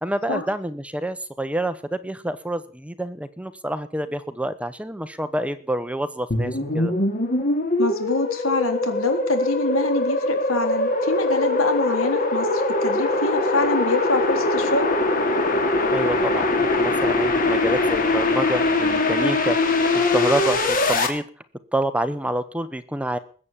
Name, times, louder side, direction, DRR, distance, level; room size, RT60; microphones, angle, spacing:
voice 1, 0.0-6.9 15.9-21.3 21.7-23.2, right 1 dB, 5° right, 11 dB, 1.0 m, -27 dB
sound 1, 6.3-21.1, left 2 dB, 45° left, 3.1 m, -22 dB
voice 2, 7.8-14.9, left 2 dB, 85° left, 6 dB, 3.7 m, -25 dB
21.0 x 8.6 x 7.5 m, 0.43 s
head